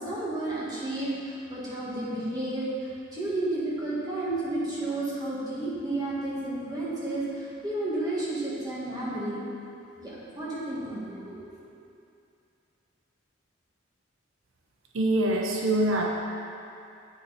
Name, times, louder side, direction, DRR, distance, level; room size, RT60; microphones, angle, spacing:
voice 1, 0.0-9.4 10.0-11.5, right 2 dB, 20° right, -8 dB, 1.9 m, -32 dB
voice 2, 14.9-16.1, right 1 dB, 80° right, 0 dB, 0.7 m, -24 dB
8.2 x 6.8 x 4.2 m, 2.7 s
head